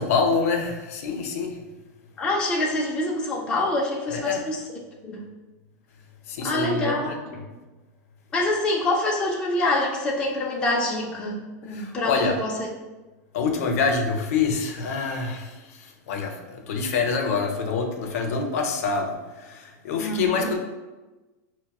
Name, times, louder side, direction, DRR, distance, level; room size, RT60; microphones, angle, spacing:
voice 1, 0.0-1.6 4.1-4.4 6.3-7.5 11.7-12.4 13.3-20.6, left 5 dB, 65° left, 3 dB, 0.5 m, -26 dB
voice 2, 2.2-4.6 5.0-5.3 6.4-7.1 8.3-12.7 20.0-20.5, left 1 dB, 10° left, -2 dB, 0.3 m, -26 dB
5.7 x 2.0 x 2.3 m, 1.2 s
supercardioid pair, 170°, 9 cm